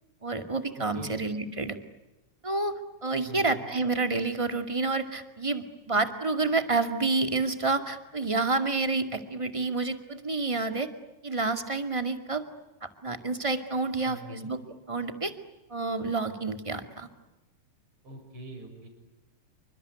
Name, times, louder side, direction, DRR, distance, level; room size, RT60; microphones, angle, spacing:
voice 1, 0.2-1.8 2.4-10.9 11.2-12.4 12.8-14.6 14.9-15.3 15.7-17.1, right 3 dB, 15° right, 8 dB, 1.5 m, -29 dB
voice 2, 0.7-1.2 3.2-3.7 14.0-14.5 18.0-18.9, right 1 dB, 40° right, 4 dB, 7.7 m, -44 dB
29.0 x 25.0 x 8.2 m, 1.0 s
omnidirectional pair, 3.7 m